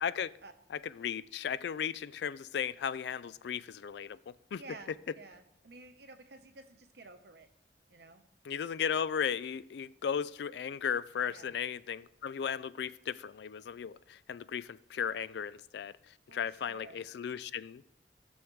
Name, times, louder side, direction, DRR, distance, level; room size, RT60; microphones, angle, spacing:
voice 1, 0.0-0.3 0.8-4.6 8.4-15.9 16.3-17.8, left 7 dB, 75° left, 0.3 m, -36 dB
voice 2, 4.6-7.5 7.9-8.2 11.2-11.6 16.3-17.0, right 3 dB, 65° right, 0.9 m, -52 dB
17.0 x 6.3 x 3.2 m
head